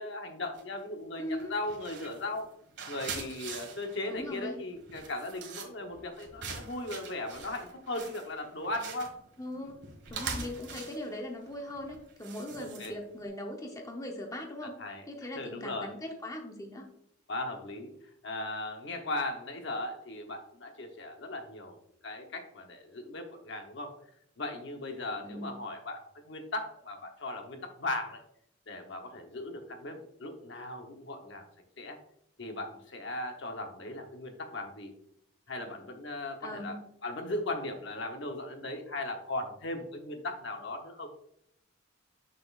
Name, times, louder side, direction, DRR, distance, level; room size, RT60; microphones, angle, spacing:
voice 1, 0.0-2.5 2.9-9.2 10.3-10.5 12.6-12.9 14.8-15.0 15.4-15.9 17.3-17.9 18.2-21.8 22.0-24.0 24.4-28.2 28.7-31.5 31.8-32.0 32.4-34.9 35.5-36.8 37.0-41.1, left 2 dB, 60° left, 5 dB, 0.9 m, -38 dB
sound 1, 0.6-0.9 1.3-13.2, right 5 dB, 55° right, 1.6 m, -43 dB
voice 2, 1.2-1.5 4.1-4.6 9.4-14.7 15.1-16.9 25.2-25.6 36.4-36.8, left 1 dB, 15° left, 1 dB, 0.8 m, -40 dB
6.7 x 6.5 x 2.4 m, 0.72 s
head